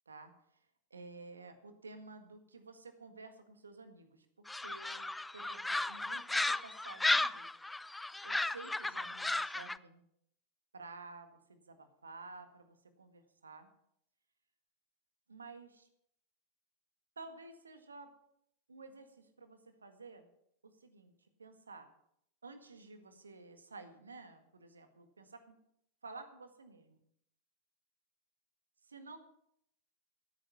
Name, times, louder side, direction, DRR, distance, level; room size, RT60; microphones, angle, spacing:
voice 1, 0.9-5.1 5.3-7.5 8.2-10.0 10.7-13.7 15.3-15.9 17.1-18.1 18.7-20.3 20.6-21.1 21.4-21.9 22.4-25.6 26.0-27.0 28.8-29.2, right 3 dB, 75° right, 8 dB, 1.7 m, -52 dB
sound 1, 4.5-9.8, left 2 dB, 5° left, 0.4 m, -34 dB
15.5 x 9.1 x 5.6 m, 0.72 s
figure-of-eight pair, 90°, 0 cm